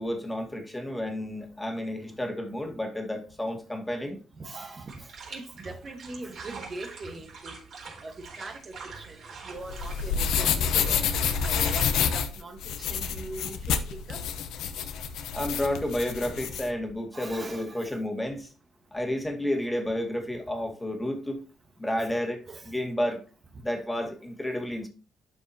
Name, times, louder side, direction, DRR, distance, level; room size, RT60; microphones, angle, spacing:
voice 1, 0.0-4.2 15.3-18.5 18.9-21.4 21.8-22.4 22.7-23.2 23.6-24.9, left 1 dB, 10° left, 2.0 m, -31 dB
voice 2, 4.4-7.6 8.0-14.2 17.1-17.9 22.5-22.7 24.0-24.1, right 2 dB, 40° right, 1.3 m, -42 dB
sound 1, 4.9-11.8, right 4 dB, 60° right, 4.0 m, -45 dB
sound 2, 9.6-16.7, left 7 dB, 85° left, 0.9 m, -28 dB
12.0 x 5.3 x 2.8 m
cardioid pair, 90°, 0 cm